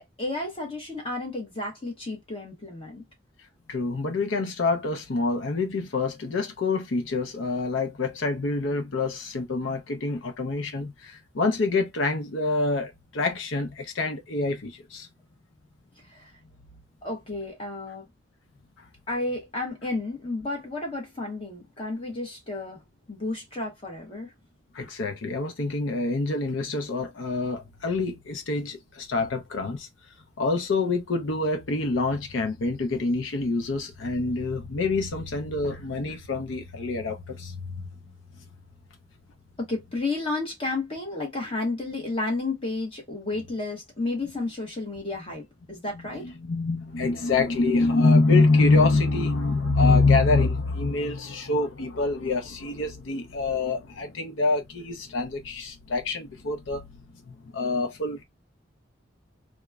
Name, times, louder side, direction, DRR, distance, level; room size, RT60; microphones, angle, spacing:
voice 1, 0.0-3.0 16.1-16.3 17.0-18.0 19.1-22.8 23.1-24.3 39.6-46.3, left 2 dB, 30° left, 1.0 m, -32 dB
voice 2, 3.7-15.1 24.7-29.9 30.4-37.9 46.1-56.8 57.3-58.2, left 3 dB, 85° left, 0.6 m, -26 dB
3.0 x 2.1 x 2.3 m
head